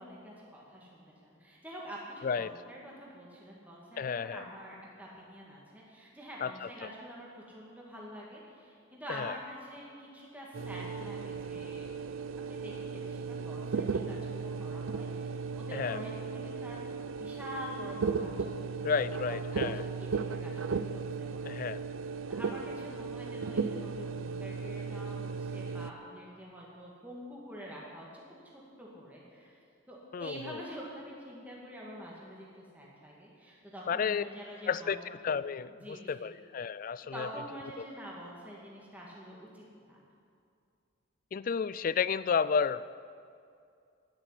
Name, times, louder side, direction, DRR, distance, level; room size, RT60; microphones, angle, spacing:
voice 1, 0.0-11.9 12.5-16.8 17.2-19.0 19.3-19.7 20.0-21.7 22.3-28.2 28.8-29.6 29.9-35.0 35.8-36.3 37.1-39.6 39.9-40.0, equal, 5° right, -4 dB, 2.0 m, -46 dB
voice 2, 2.2-2.5 4.0-4.4 6.4-6.9 9.1-9.4 15.7-16.0 18.8-19.8 21.5-21.8 30.1-30.6 33.9-34.2 34.7-37.3 37.8-37.9 41.3-42.9, left 6 dB, 40° left, 17 dB, 0.3 m, -32 dB
sound 1, 10.5-25.9, right 5 dB, 75° right, 0.6 m, -36 dB
11.5 x 10.5 x 8.4 m, 2.4 s
head